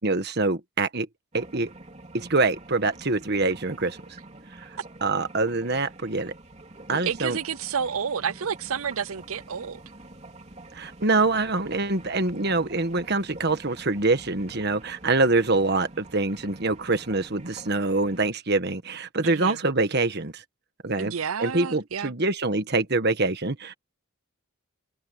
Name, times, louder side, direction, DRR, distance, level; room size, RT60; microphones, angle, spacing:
voice 1, 0.0-1.1 1.3-1.7 2.1-4.0 4.6-4.7 5.0-6.3 6.9-7.4 10.7-20.4 20.8-21.1 21.4-23.7, right 3 dB, 50° right, 1.5 m, -25 dB
sound 1, 1.3-18.3, right 2 dB, 30° right, 3.4 m, -47 dB
voice 2, 7.1-9.8 19.2-19.6 21.0-22.1, right 7 dB, 75° right, 0.6 m, -30 dB
head